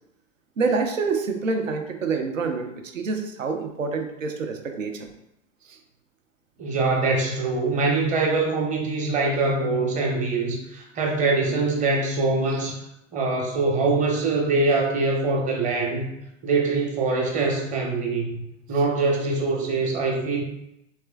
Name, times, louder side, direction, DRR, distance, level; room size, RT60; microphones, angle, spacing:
voice 1, 0.6-5.1 5.6-5.8 12.5-12.6, right 4 dB, 85° right, 4 dB, 0.6 m, -27 dB
voice 2, 6.6-12.8 13.1-16.0 16.4-18.4 18.7-20.4, right 3 dB, 20° right, -1 dB, 0.7 m, -23 dB
3.3 x 3.0 x 2.2 m, 0.83 s
figure-of-eight pair, 95°, 38 cm